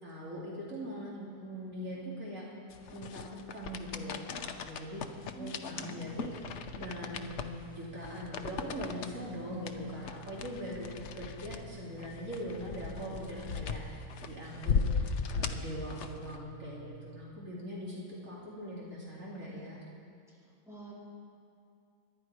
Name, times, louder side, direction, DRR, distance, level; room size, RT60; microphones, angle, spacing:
voice 1, 0.0-2.6 2.9-5.0 5.4-14.7 15.0-19.8, equal, 65° right, -6 dB, 3.2 m, -42 dB
sound 1, 2.7-16.4, left 5 dB, 60° left, 1.0 m, -38 dB
voice 2, 5.3-6.0 20.7-20.9, right 1 dB, ahead, -7 dB, 4.1 m, -46 dB
sound 2, 5.9-17.1, right 4 dB, 45° right, 2.7 m, -51 dB
24.5 x 11.0 x 4.8 m, 2.5 s
omnidirectional pair, 1.5 m